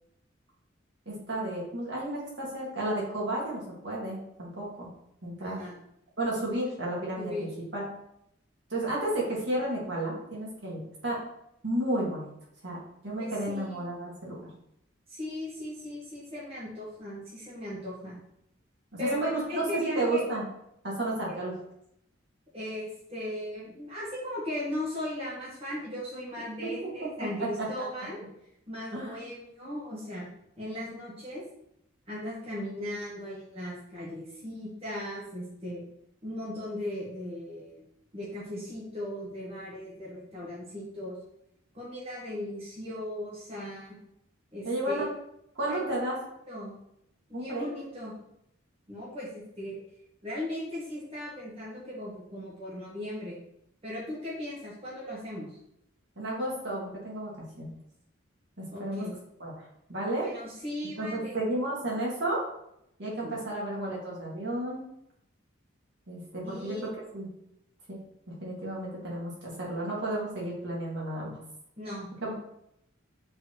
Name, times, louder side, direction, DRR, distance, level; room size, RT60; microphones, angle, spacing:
voice 1, 1.1-4.9 5.2-5.6 6.2-7.3 7.7-7.9 8.7-11.2 11.6-12.3 12.6-12.8 13.0-14.4 18.9-20.4 20.8-21.5 26.6-26.9 27.4-27.5 28.9-29.2 44.6-45.1 45.6-46.2 47.3-47.7 56.2-57.7 58.6-59.1 59.4-59.5 59.9-60.3 61.0-62.4 63.0-64.8 66.1-66.8 67.1-67.3 67.9-68.0 68.4-71.3, right 1 dB, 60° right, -5 dB, 2.2 m, -32 dB
voice 2, 5.4-5.8 7.2-7.5 13.2-13.9 15.1-18.2 19.0-20.2 21.3-21.4 22.5-28.2 28.7-30.2 30.6-31.4 32.1-35.8 36.2-37.9 38.1-41.2 41.7-44.0 44.5-45.1 45.7-45.8 46.5-46.7 47.3-48.2 48.9-49.8 50.2-53.4 53.8-55.6 58.7-59.2 60.2-61.4 63.2-63.3 66.4-67.0 71.8-72.3, left 1 dB, 30° right, -7 dB, 1.7 m, -37 dB
7.7 x 4.1 x 3.2 m, 0.78 s
head